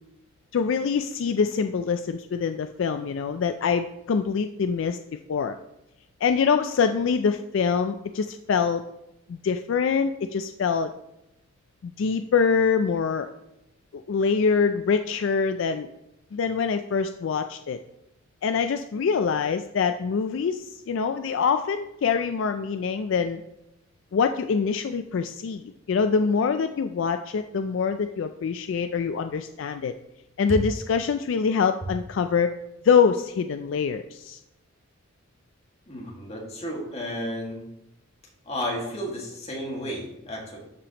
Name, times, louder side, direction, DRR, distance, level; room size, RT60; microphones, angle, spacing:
voice 1, 0.5-5.0 5.3-5.6 6.2-8.8 9.3-10.9 11.8-13.3 13.9-15.9 16.3-17.8 18.4-23.4 24.1-29.9 30.4-32.5 32.8-34.4, left 6 dB, 65° left, 8 dB, 0.3 m, -24 dB
voice 2, 35.9-37.6 38.4-40.6, equal, 30° left, -1 dB, 1.8 m, -32 dB
12.5 x 5.0 x 2.9 m, 0.88 s
head